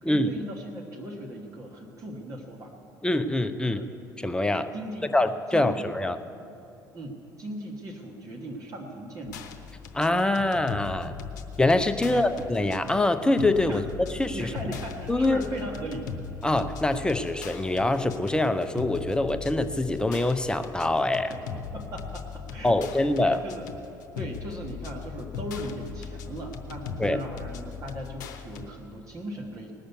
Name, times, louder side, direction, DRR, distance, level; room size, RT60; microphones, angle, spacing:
voice 1, 0.0-2.7 3.6-3.9 4.7-5.1 5.5-5.9 6.9-9.5 12.0-12.3 13.7-13.8 14.3-16.1 21.3-21.4 21.7-23.6 24.2-29.7, right 1 dB, 35° right, -1 dB, 1.5 m, -38 dB
voice 2, 3.0-3.8 4.2-4.7 5.1-6.2 9.9-11.1 11.6-14.5 15.1-15.4 16.4-21.3 22.6-23.4 27.0-27.2, left 2 dB, 10° left, 9 dB, 0.7 m, -24 dB
sound 1, 9.2-28.7, left 6 dB, 65° left, 0.8 m, -39 dB
18.5 x 6.6 x 8.0 m, 2.7 s
figure-of-eight pair, 55°, 10 cm